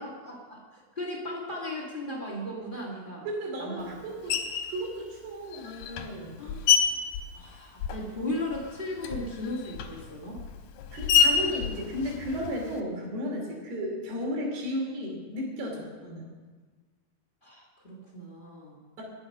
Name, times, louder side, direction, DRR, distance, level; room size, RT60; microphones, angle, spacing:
voice 1, 0.0-3.3 3.6-4.0 6.4-6.6 7.3-10.4 17.4-18.8, left 1 dB, 30° left, -2 dB, 0.9 m, -36 dB
voice 2, 3.3-4.4 4.7-6.4 10.9-16.3 19.0-19.1, equal, 70° right, 0 dB, 4.9 m, -34 dB
Screech, 4.3-4.8 5.5-8.2 8.5-12.8, left 7 dB, 75° left, 2.8 m, -28 dB
20.5 x 7.9 x 5.5 m, 1.3 s
omnidirectional pair, 4.9 m